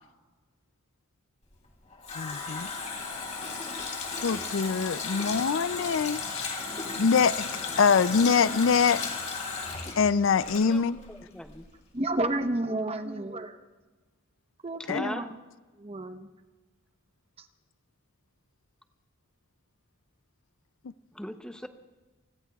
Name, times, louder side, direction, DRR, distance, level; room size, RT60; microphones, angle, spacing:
Water tap faucet, 1.6-11.2 11.4-11.6, left 4 dB, 35° left, 2.9 m, -35 dB
voice 1, 2.2-2.7 4.2-6.5 6.9-7.5 7.8-9.0 10.0-11.0 14.9-15.1, left 5 dB, 65° left, 0.4 m, -24 dB
voice 2, 10.7-11.7 14.8-15.3 21.1-21.7, equal, 5° left, 0.7 m, -39 dB
voice 3, 11.9-13.6 14.6-15.2 15.8-16.3, right 1 dB, 30° right, 0.9 m, -30 dB
29.5 x 20.5 x 2.4 m
head